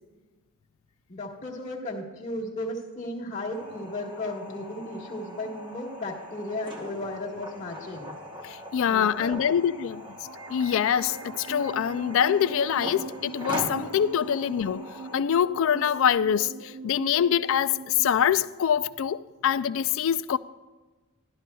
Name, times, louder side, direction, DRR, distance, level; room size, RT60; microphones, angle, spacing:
voice 1, 1.1-8.2 8.9-9.4, left 1 dB, 35° left, 1.4 m, -35 dB
old fridge, 3.5-15.2, equal, 20° right, 1.0 m, -41 dB
voice 2, 8.4-10.0 10.5-14.9 15.1-20.4, left 8 dB, 65° left, 0.3 m, -25 dB
sound 1, 10.2-18.2, right 4 dB, 70° right, 0.4 m, -42 dB
12.5 x 12.0 x 2.3 m
head